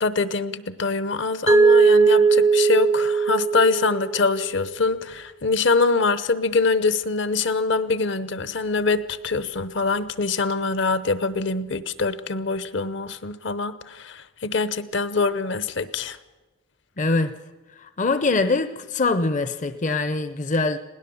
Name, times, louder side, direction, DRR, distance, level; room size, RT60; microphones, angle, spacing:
voice 1, 0.0-16.2, left 4 dB, 65° left, 14 dB, 0.9 m, -24 dB
Mallet percussion, 1.5-4.4, right 4 dB, 15° right, 0.5 m, -18 dB
voice 2, 17.0-17.3 18.0-20.8, left 3 dB, 40° left, 11 dB, 0.6 m, -23 dB
20.5 x 18.0 x 7.1 m, 1.2 s
head